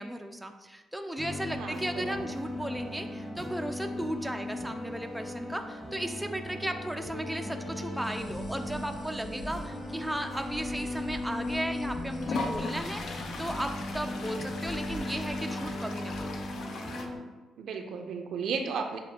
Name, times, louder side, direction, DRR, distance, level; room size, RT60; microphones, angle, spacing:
voice 1, 0.0-16.4, right 1 dB, 5° right, 5 dB, 0.3 m, -36 dB
sound 1, 1.2-17.2, left 1 dB, 25° left, 1.0 m, -37 dB
voice 2, 1.6-2.4 17.6-19.0, right 5 dB, 70° right, 5 dB, 0.5 m, -34 dB
sound 2, 8.0-16.6, equal, 45° left, 0.8 m, -47 dB
Toilet flush, 11.2-11.3 12.2-17.1, left 3 dB, 65° left, 0.5 m, -38 dB
7.0 x 2.4 x 2.8 m, 1.2 s
cardioid pair, 90°, 0 cm